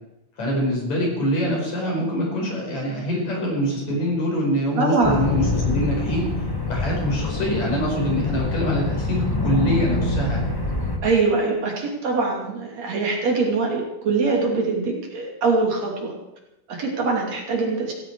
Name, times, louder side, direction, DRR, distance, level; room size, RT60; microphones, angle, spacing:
voice 1, 0.4-6.3 6.7-10.4, equal, 55° left, -1 dB, 6.3 m, -24 dB
voice 2, 4.8-5.3 11.0-16.2 16.7-17.9, right 3 dB, 55° right, 0 dB, 3.8 m, -23 dB
sound 1, 5.0-11.0, left 3 dB, 20° left, 0.6 m, -25 dB
18.0 x 16.0 x 4.7 m, 0.91 s
omnidirectional pair, 3.8 m